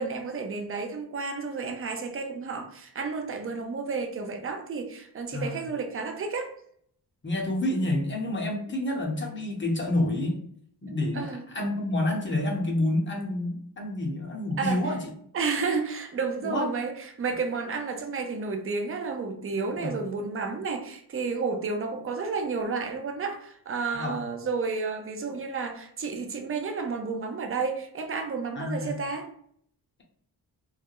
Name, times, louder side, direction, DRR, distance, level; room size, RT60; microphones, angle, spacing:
voice 1, 0.0-6.5 11.1-11.4 14.6-14.8 15.3-29.3, right 4 dB, 35° right, 0.5 m, -31 dB
voice 2, 7.2-10.4 10.8-15.0 16.4-16.7 19.8-20.0 23.9-24.2 28.6-28.9, left 1 dB, 30° left, 0.7 m, -28 dB
2.3 x 2.1 x 2.9 m
cardioid pair, 80°, 39 cm